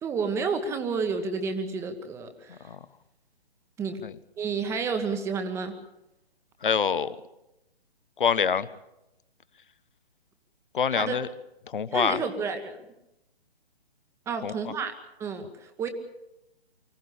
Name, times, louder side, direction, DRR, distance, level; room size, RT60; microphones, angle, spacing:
voice 1, 0.0-2.5 3.8-4.0 4.4-5.7 10.9-11.1 11.9-12.8 14.3-14.9 15.2-15.9, right 5 dB, 10° right, 8 dB, 1.4 m, -30 dB
voice 2, 2.5-2.8 4.0-4.1 6.6-7.2 8.2-8.7 10.7-11.3 11.7-12.2 14.4-14.7, left 7 dB, 55° left, 16 dB, 1.2 m, -26 dB
24.5 x 16.5 x 8.6 m, 0.89 s
figure-of-eight pair, 140°, 32 cm